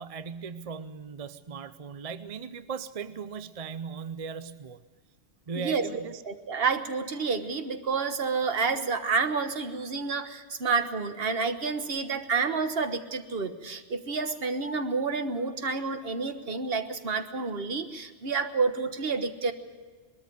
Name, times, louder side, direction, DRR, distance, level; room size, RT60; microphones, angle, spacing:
voice 1, 0.0-4.8 5.5-6.2, right 6 dB, 40° right, 12 dB, 0.7 m, -38 dB
voice 2, 5.6-19.5, right 4 dB, 55° right, 8 dB, 1.5 m, -29 dB
21.5 x 13.5 x 9.3 m, 1.5 s
omnidirectional pair, 1.2 m